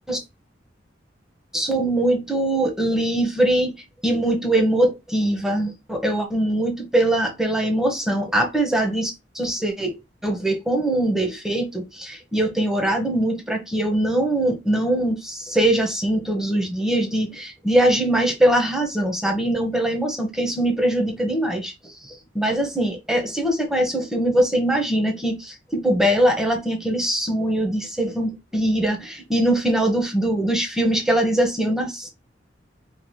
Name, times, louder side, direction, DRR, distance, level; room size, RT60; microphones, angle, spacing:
voice 1, 1.5-3.7 4.0-32.1, right 1 dB, 5° right, 1.1 m, -22 dB
4.8 x 3.2 x 2.2 m
head